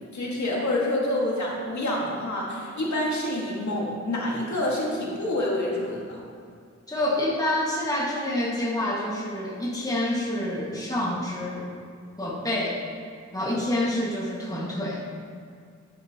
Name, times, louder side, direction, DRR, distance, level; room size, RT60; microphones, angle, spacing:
voice 1, 0.1-6.2, left 1 dB, 70° left, -4 dB, 1.8 m, -27 dB
voice 2, 6.9-11.7 12.2-12.8 13.3-15.0, left 1 dB, 10° left, -5 dB, 1.8 m, -27 dB
11.0 x 9.3 x 2.9 m, 2.2 s
wide cardioid pair, 95°, 30 cm